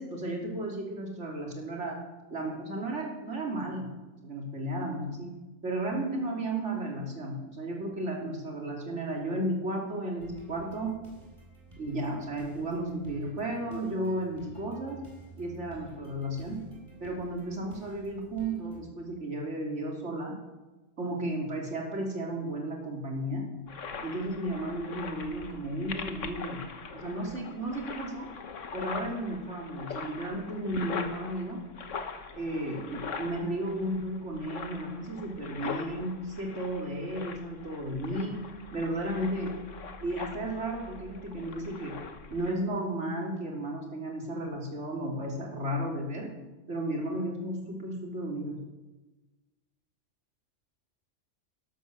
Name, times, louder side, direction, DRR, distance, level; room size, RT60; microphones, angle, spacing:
voice 1, 0.0-2.0 2.3-3.9 4.2-5.3 5.6-11.0 11.8-15.0 15.4-16.6 17.0-20.3 21.0-23.5 24.0-26.6 26.9-28.3 28.7-31.6 32.3-38.4 38.7-39.6 40.0-41.9 42.3-46.3 46.7-48.6, right 1 dB, 60° right, -1 dB, 3.2 m, -34 dB
sound 1, 10.2-18.8, right 2 dB, 25° right, 3.9 m, -52 dB
sound 2, 23.7-42.5, left 5 dB, 70° left, 1.5 m, -42 dB
12.5 x 12.0 x 6.6 m, 1.1 s
omnidirectional pair, 1.3 m